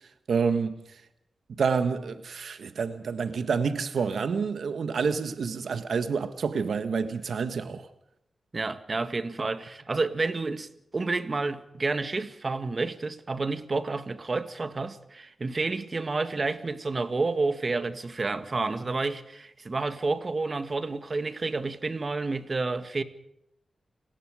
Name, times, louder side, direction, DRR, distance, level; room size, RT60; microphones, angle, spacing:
voice 1, 0.3-0.8 1.5-7.9, right 5 dB, 80° right, 1.5 m, -28 dB
voice 2, 8.5-10.7 10.9-23.0, right 3 dB, 40° right, 1.9 m, -30 dB
29.5 x 20.0 x 5.0 m
wide cardioid pair, 85°, 0 cm